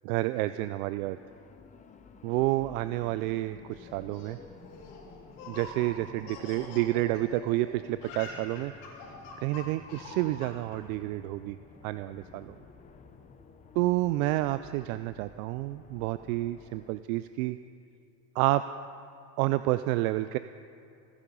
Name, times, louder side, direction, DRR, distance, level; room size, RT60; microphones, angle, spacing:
voice 1, 0.0-1.2 2.2-4.4 5.5-8.7 9.4-11.6 11.8-12.6 13.8-17.6 18.4-18.6 19.4-20.4, right 17 dB, 75° right, 13 dB, 0.5 m, -29 dB
sound 1, 1.0-17.0, left 5 dB, 15° left, 0.7 m, -52 dB
Laughter, 3.8-7.6 7.9-10.8, left 3 dB, 70° left, 4.5 m, -45 dB
25.5 x 10.0 x 5.4 m, 2.7 s
supercardioid pair, 145°, 42 cm